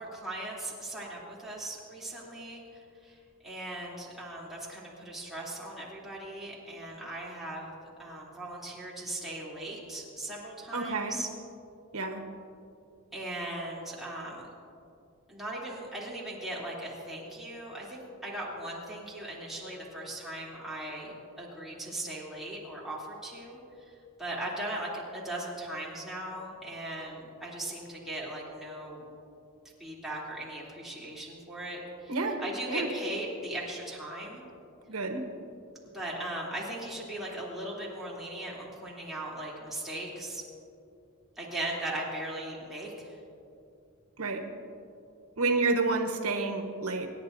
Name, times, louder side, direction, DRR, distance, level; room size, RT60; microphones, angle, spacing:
voice 1, 0.0-7.7 8.0-11.3 13.1-14.5 15.3-23.6 23.9-24.0 24.2-29.1 29.8-34.4 35.9-40.4 41.4-43.2, right 1 dB, ahead, -7 dB, 3.1 m, -38 dB
voice 2, 10.7-11.2 11.9-12.2 32.1-32.4 32.7-32.9 34.9-35.2 44.2-44.5 45.4-47.1, right 3 dB, 90° right, 3 dB, 1.2 m, -29 dB
28.0 x 10.5 x 2.7 m, 2.6 s
head